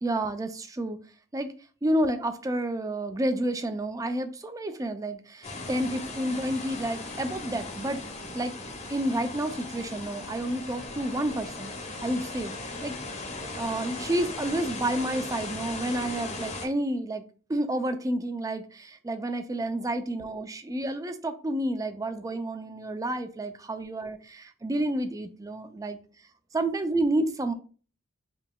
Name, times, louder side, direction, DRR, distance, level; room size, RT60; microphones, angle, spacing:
voice 1, 0.0-1.0 1.3-1.5 1.8-8.0 8.3-8.5 8.9-13.0 13.5-17.2 17.5-26.0 26.5-27.5, right 1 dB, 15° right, 9 dB, 0.4 m, -30 dB
sound 1, 5.4-16.7, left 2 dB, 35° left, 0.7 m, -38 dB
5.2 x 2.7 x 2.2 m, 0.38 s
head